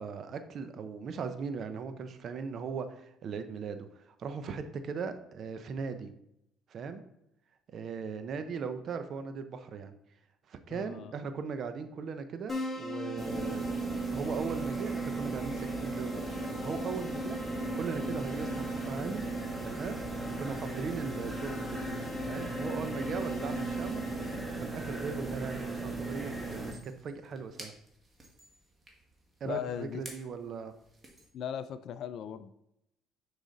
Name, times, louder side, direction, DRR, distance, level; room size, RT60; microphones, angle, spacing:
voice 1, 0.0-6.1 6.7-7.0 7.7-9.9 10.5-13.7 14.1-19.3 19.6-20.0 20.4-21.9 22.3-24.1 24.6-27.7 29.4-30.7, right 5 dB, 55° right, 9 dB, 0.7 m, -38 dB
voice 2, 10.7-11.1 29.4-30.0 31.3-32.5, left 9 dB, 60° left, 12 dB, 0.4 m, -38 dB
Keyboard (musical), 12.5-24.4, left 1 dB, 15° left, 2.0 m, -41 dB
sound 1, 13.2-26.7, right 3 dB, 10° right, 1.4 m, -37 dB
sound 2, 26.2-31.3, right 1 dB, 25° right, 1.8 m, -53 dB
6.3 x 4.9 x 4.0 m, 0.80 s
supercardioid pair, 85°, 0 cm